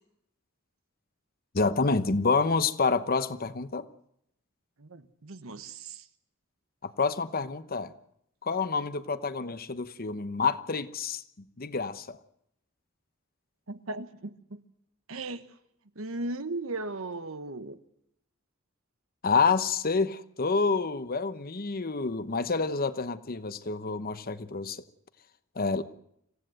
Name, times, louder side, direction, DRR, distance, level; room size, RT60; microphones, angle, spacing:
voice 1, 1.5-3.9 6.8-7.9 8.4-11.2 11.6-12.2 19.2-24.8 25.6-25.8, left 4 dB, 45° left, 12 dB, 1.0 m, -28 dB
voice 2, 4.8-6.1 13.7-14.6 15.1-15.4 15.9-17.8 25.8-25.9, right 2 dB, 75° right, 11 dB, 1.2 m, -37 dB
26.0 x 16.0 x 7.9 m, 0.76 s
head